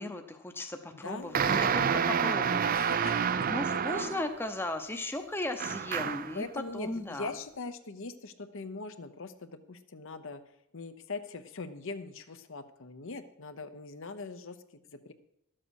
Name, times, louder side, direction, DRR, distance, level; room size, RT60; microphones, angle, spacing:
voice 1, 0.0-6.4 6.7-7.3, left 1 dB, 10° left, 6 dB, 0.8 m, -37 dB
voice 2, 0.9-2.1 2.7-3.5 3.9-4.1 6.3-10.4 10.7-14.6 14.9-15.1, left 3 dB, 60° left, 9 dB, 0.8 m, -41 dB
sound 1, 1.3-4.4 5.6-6.4, right 7 dB, 40° right, 0.4 m, -28 dB
12.5 x 7.7 x 6.4 m, 0.77 s
head